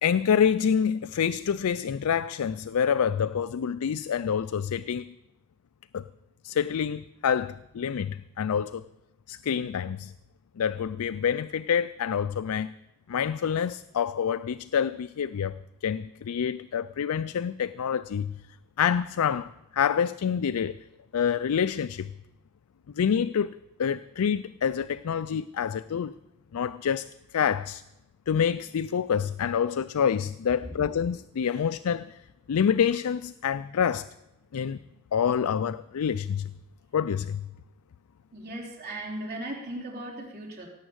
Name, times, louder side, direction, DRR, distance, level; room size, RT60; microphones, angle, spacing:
voice 1, 0.0-5.1 5.9-6.0 6.4-8.8 9.3-10.1 10.6-12.7 13.1-18.3 18.8-20.8 21.1-22.1 23.0-26.1 26.5-27.8 28.3-32.2 32.5-34.1 34.5-34.8 35.1-36.5 36.9-37.5, left 7 dB, 80° left, 0.4 m, -27 dB
voice 2, 38.3-40.7, right 1 dB, 45° right, 3.6 m, -37 dB
17.5 x 7.2 x 8.0 m
head